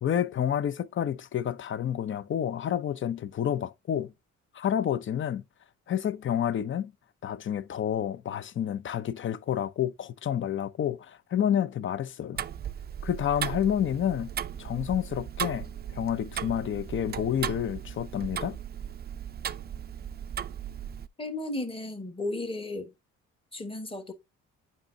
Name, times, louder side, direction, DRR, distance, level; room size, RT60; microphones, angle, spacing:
voice 1, 0.0-4.1 4.5-5.4 5.9-6.9 7.2-12.4 13.0-14.3 14.6-18.6, left 9 dB, 40° left, 0.6 m, -29 dB
Tick-tock, 12.4-21.1, right 9 dB, 35° right, 0.4 m, -36 dB
voice 2, 21.2-22.9 23.5-24.1, left 2 dB, 20° left, 1.3 m, -34 dB
7.6 x 5.4 x 2.7 m
cardioid pair, 90°, 30 cm